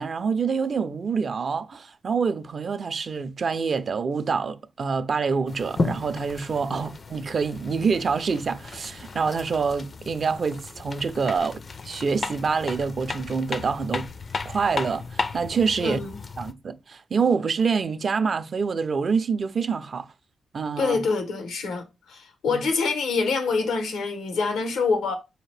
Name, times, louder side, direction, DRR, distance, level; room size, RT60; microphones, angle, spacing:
voice 1, 0.0-11.6 11.9-14.1 14.4-16.0 16.4-20.1 20.5-21.0 22.5-22.6, right 5 dB, 50° right, 0.4 m, -26 dB
sound 1, 5.5-16.5, left 4 dB, 45° left, 0.4 m, -34 dB
voice 2, 15.8-16.2 20.8-25.1, left 4 dB, 90° left, 0.8 m, -26 dB
4.2 x 2.8 x 3.2 m
cardioid pair, 75°, 0 cm